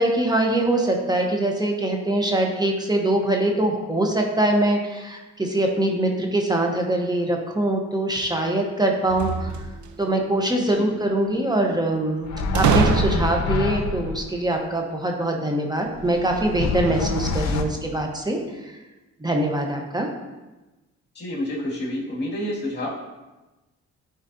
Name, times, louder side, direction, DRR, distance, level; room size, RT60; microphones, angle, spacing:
voice 1, 0.0-9.5 10.0-18.8 19.2-20.1, right 1 dB, 15° right, 1 dB, 1.0 m, -23 dB
sound 1, 9.0-10.1 12.6-13.6, right 6 dB, 70° right, 0.6 m, -23 dB
sound 2, 12.2-14.3 15.9-17.6, left 4 dB, 65° left, 0.7 m, -26 dB
voice 2, 21.1-22.9, left 1 dB, 35° left, -4 dB, 2.2 m, -28 dB
10.0 x 3.9 x 2.7 m, 1.1 s
cardioid pair, 90°, 30 cm